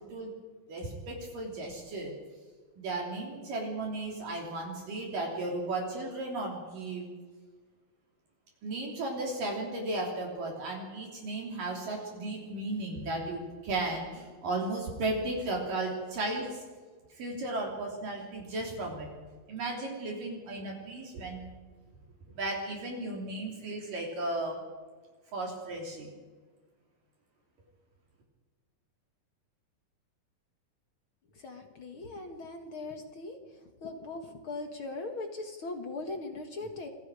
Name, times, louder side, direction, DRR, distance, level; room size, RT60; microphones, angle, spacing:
voice 1, 0.7-2.1 2.8-7.1 8.6-16.6 17.2-19.1 19.5-21.5 22.3-24.6 25.3-26.1, right 2 dB, 60° right, -1 dB, 4.8 m, -35 dB
voice 2, 31.4-33.4 33.8-36.9, left 3 dB, 50° left, 5 dB, 1.6 m, -39 dB
27.5 x 22.0 x 5.0 m, 1.4 s
omnidirectional pair, 4.4 m